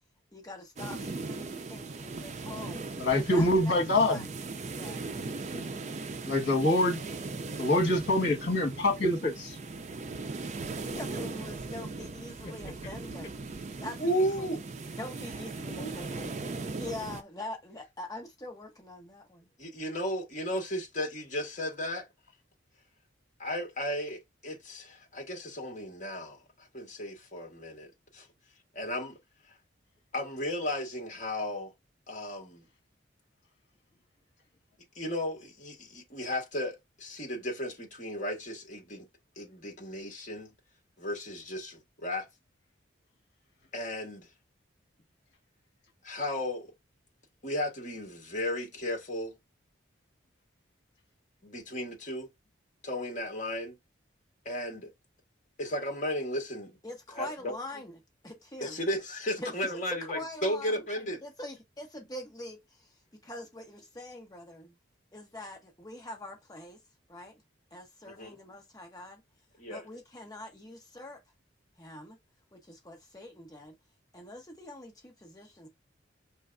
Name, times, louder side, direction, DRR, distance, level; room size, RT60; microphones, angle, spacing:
voice 1, 0.3-3.8 4.1-4.3 4.7-5.1 10.2-13.4 13.8-14.5 15.0-16.3 16.8-19.5 56.8-57.9 58.2-58.8 59.4-60.8 61.2-62.9 63.2-64.7 65.1-66.8 67.1-67.4 67.7-69.2 69.7-71.2 71.8-72.2 72.5-73.7 74.1-75.7, left 1 dB, 20° left, 1.0 m, -44 dB
sound 1, 0.8-17.2, right 3 dB, 35° right, 0.4 m, -39 dB
voice 2, 3.0-4.2 5.5-5.7 6.3-7.0 7.6-9.6, left 1 dB, 65° left, 1.6 m, -25 dB
voice 3, 14.0-14.6 15.7-16.3 19.6-22.1 23.4-26.4 26.7-28.2 28.7-29.2 30.1-31.7 32.1-32.7 34.9-39.1 39.4-40.5 41.0-42.3 43.7-44.3 46.0-46.7 47.4-49.4 51.4-52.3 52.8-53.8 54.4-54.9 55.6-56.8 57.1-57.5 58.6-61.2 64.6-64.7 68.1-68.4 69.6-69.8, equal, 40° left, 1.5 m, -34 dB
5.4 x 3.3 x 2.6 m
head